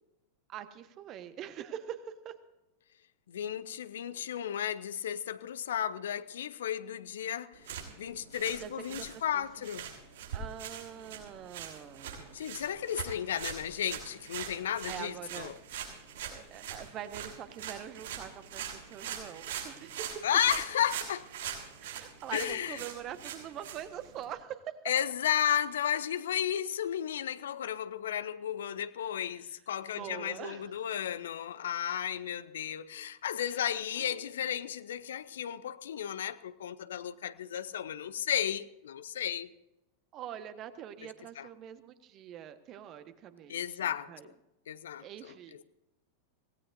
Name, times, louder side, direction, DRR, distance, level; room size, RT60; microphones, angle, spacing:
voice 1, 0.5-2.3 8.6-9.4 10.3-12.4 14.9-15.5 16.3-20.1 21.8-24.6 29.9-30.8 31.9-32.1 33.4-34.3 40.1-44.3 45.0-45.6, right 10 dB, 35° right, 1.3 m, -44 dB
voice 2, 3.3-9.9 12.3-15.5 20.2-21.3 22.3-22.8 24.9-39.5 41.4-41.5 43.5-44.1 44.7-45.3, left 10 dB, 60° left, 0.7 m, -33 dB
sound 1, 7.5-24.3, right 8 dB, 60° right, 6.6 m, -43 dB
24.5 x 17.5 x 2.7 m
figure-of-eight pair, 90°, 0 cm